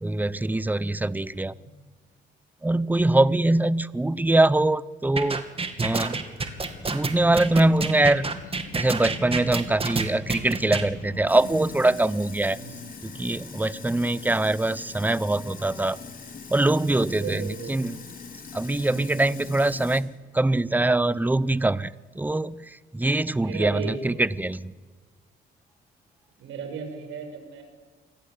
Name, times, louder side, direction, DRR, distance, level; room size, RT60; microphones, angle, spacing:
voice 1, 0.0-1.5 2.6-5.4 5.8-6.2 6.9-8.3 8.7-12.6 13.0-16.0 16.5-18.0 18.5-22.6 22.9-24.7, right 2 dB, 10° right, 18 dB, 0.8 m, -23 dB
sound 1, 5.2-10.9, right 4 dB, 30° right, 2.8 m, -28 dB
sound 2, 6.4-11.9, left 3 dB, 85° left, 5.5 m, -43 dB
Sink (filling or washing), 11.3-20.0, left 5 dB, 45° left, 4.4 m, -42 dB
voice 2, 12.5-12.9 17.1-17.9 18.7-19.1 23.3-24.3 26.4-27.6, right 5 dB, 85° right, 6 dB, 6.7 m, -36 dB
27.5 x 20.5 x 8.5 m, 1.3 s
cardioid pair, 90°, 20 cm